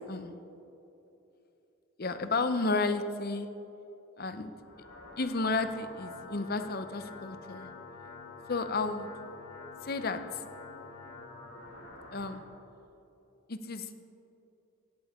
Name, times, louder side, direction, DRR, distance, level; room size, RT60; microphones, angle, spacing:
voice 1, 2.0-3.5 4.2-4.5 5.2-7.7 8.5-9.1 9.8-10.2 12.1-12.4 13.5-14.0, left 3 dB, 45° left, 9 dB, 0.7 m, -32 dB
sound 1, 4.5-12.4, left 4 dB, 90° left, 3.2 m, -48 dB
17.0 x 14.5 x 3.7 m, 2.9 s
head